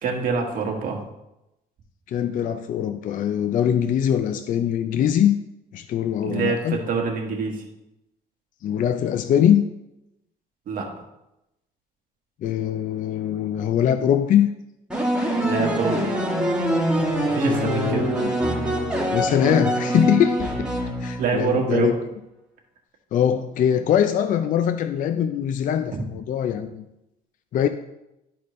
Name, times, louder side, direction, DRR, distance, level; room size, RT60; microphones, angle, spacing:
voice 1, 0.0-1.0 6.2-7.6 10.7-10.9 15.5-16.0 17.3-18.1 21.2-21.9 25.9-26.0, right 5 dB, 55° right, 1 dB, 1.7 m, -25 dB
voice 2, 2.1-5.4 5.7-6.8 8.6-9.6 12.4-14.5 17.5-18.3 19.1-20.7 21.0-22.0 23.1-26.8 27.5-27.7, left 9 dB, 50° left, 10 dB, 0.5 m, -22 dB
sound 1, 14.9-21.5, right 1 dB, 5° right, 2.1 m, -24 dB
12.0 x 4.3 x 3.2 m, 0.89 s
cardioid pair, 110°, 17 cm